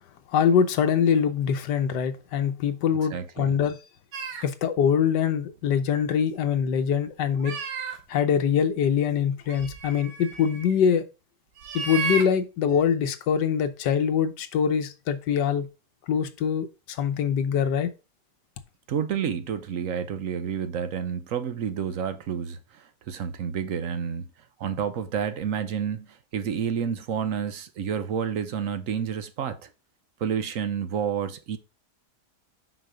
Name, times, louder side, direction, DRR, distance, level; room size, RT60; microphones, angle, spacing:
voice 1, 0.3-3.8 4.4-7.6 8.1-11.0 11.7-15.7 16.1-17.9, left 7 dB, 85° left, 1.4 m, -24 dB
voice 2, 3.1-3.5 18.9-24.3 24.6-29.7 30.2-31.6, right 8 dB, 60° right, 1.0 m, -30 dB
sound 1, 4.1-4.5 5.6-5.7 6.0-6.1 7.4-8.2 9.4-10.8 11.6-12.3, right 5 dB, 90° right, 1.8 m, -33 dB
6.1 x 5.2 x 5.0 m
omnidirectional pair, 1.8 m